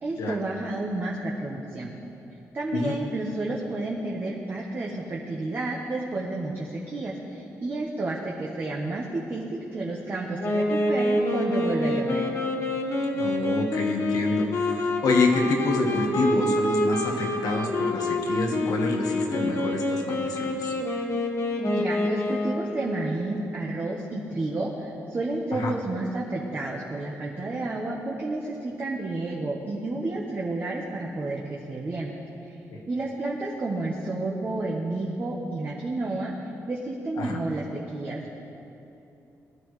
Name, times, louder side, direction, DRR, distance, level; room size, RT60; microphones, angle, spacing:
voice 1, 0.0-2.0 2.5-12.2 21.6-32.1 32.5-32.6 32.9-38.4, right 2 dB, 35° right, -3 dB, 1.2 m, -31 dB
Wind instrument woodwind instrument, 10.4-22.8, left 1 dB, 55° left, 1.5 m, -27 dB
voice 2, 13.1-20.7 25.5-25.7 32.7-32.8 37.2-37.4, left 3 dB, 80° left, 2 dB, 1.5 m, -27 dB
20.0 x 12.0 x 3.3 m, 2.8 s
wide cardioid pair, 130°, 6 cm